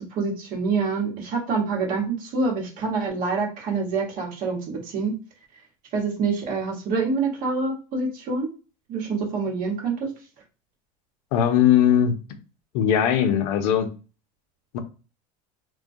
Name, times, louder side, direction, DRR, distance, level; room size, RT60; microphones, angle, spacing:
voice 1, 0.0-5.1 5.9-8.5 8.9-10.1, right 4 dB, 50° right, 0 dB, 1.0 m, -26 dB
voice 2, 11.3-12.1 12.7-13.9 14.7-14.8, left 9 dB, 70° left, 7 dB, 0.5 m, -19 dB
2.2 x 2.2 x 2.6 m, 0.33 s
supercardioid pair, 110°, 19 cm